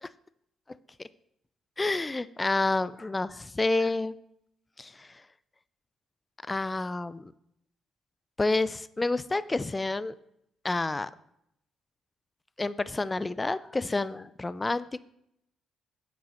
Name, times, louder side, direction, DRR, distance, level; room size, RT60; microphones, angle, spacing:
voice 1, 1.8-4.1 4.8-5.1 6.5-7.2 8.4-10.2 10.6-11.1 12.6-15.0, left 2 dB, 20° left, 16 dB, 0.3 m, -29 dB
7.3 x 6.1 x 4.3 m, 0.76 s
cardioid pair, 90°, 0 cm